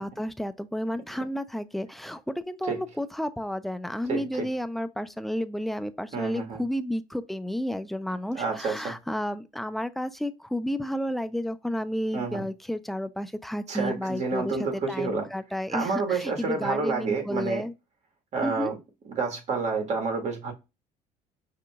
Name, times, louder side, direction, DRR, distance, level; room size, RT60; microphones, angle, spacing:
voice 1, 0.0-17.7 18.4-18.7, equal, ahead, 0.4 m, -31 dB
voice 2, 4.1-4.5 6.1-6.6 8.3-9.0 12.1-12.5 13.7-15.3 15.7-17.6 18.3-18.7 19.1-20.5, right 4 dB, 50° right, 1.6 m, -29 dB
5.0 x 2.8 x 2.4 m
cardioid pair, 95°, 15 cm